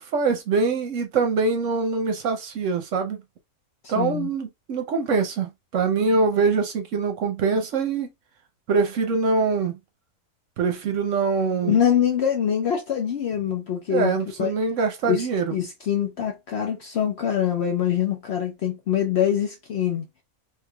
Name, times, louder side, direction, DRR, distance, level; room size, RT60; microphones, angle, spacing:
voice 1, 0.0-3.2 3.9-8.1 8.7-9.8 10.6-11.8 13.9-15.5, right 4 dB, 65° right, 0.9 m, -24 dB
voice 2, 3.8-4.3 11.6-14.5 15.1-20.1, left 9 dB, 60° left, 0.7 m, -24 dB
3.3 x 3.0 x 2.2 m
omnidirectional pair, 1.6 m